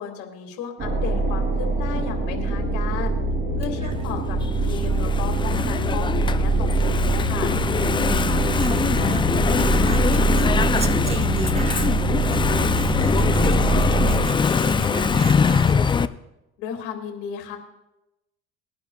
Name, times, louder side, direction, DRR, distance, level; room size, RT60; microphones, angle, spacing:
voice 1, 0.0-3.2 3.6-7.5 16.6-17.6, left 8 dB, 80° left, 3 dB, 2.1 m, -34 dB
sound 1, 0.8-14.3, right 2 dB, 40° right, 2.9 m, -23 dB
Engine / Mechanisms, 3.9-16.1, left 6 dB, 15° left, 0.3 m, -23 dB
voice 2, 8.1-9.2 9.6-11.9 12.3-15.8, right 2 dB, 20° right, 6 dB, 1.2 m, -33 dB
21.0 x 10.5 x 2.3 m, 0.95 s
cardioid pair, 105°, 30 cm